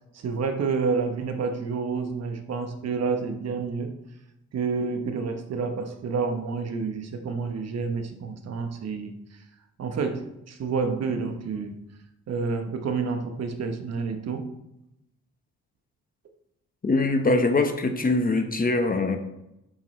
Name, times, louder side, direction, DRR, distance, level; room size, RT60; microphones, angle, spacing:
voice 1, 0.1-3.9 4.5-9.4 9.8-11.8 12.3-14.5, right 5 dB, 55° right, 6 dB, 1.1 m, -29 dB
voice 2, 16.8-19.2, left 2 dB, 30° left, 6 dB, 1.2 m, -23 dB
8.8 x 7.7 x 3.2 m, 0.88 s
cardioid pair, 90°, 30 cm